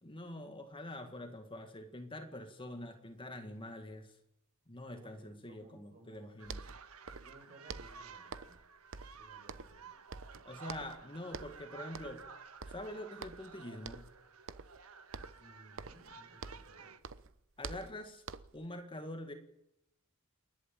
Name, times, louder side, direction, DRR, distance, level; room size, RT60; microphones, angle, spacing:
voice 1, 0.0-4.2 4.7-6.6 10.5-12.3 12.7-14.1 17.6-18.2 18.5-19.3, left 1 dB, 25° left, 6 dB, 1.9 m, -45 dB
voice 2, 4.9-6.3 7.1-8.6 8.9-9.9 15.4-17.0, right 1 dB, 40° right, 4 dB, 6.3 m, -60 dB
sound 1, 6.2-6.3 6.4-7.4 7.7-8.6 8.9-9.9 10.1-11.0 11.3-11.6 11.9-12.3 12.6-13.5 13.8-14.2 14.5-14.8 15.1-16.8 17.0-18.7, right 4 dB, 60° right, 0.9 m, -47 dB
sound 2, 6.4-17.0, right 5 dB, 80° right, 1.5 m, -53 dB
28.5 x 11.5 x 8.8 m, 0.82 s
head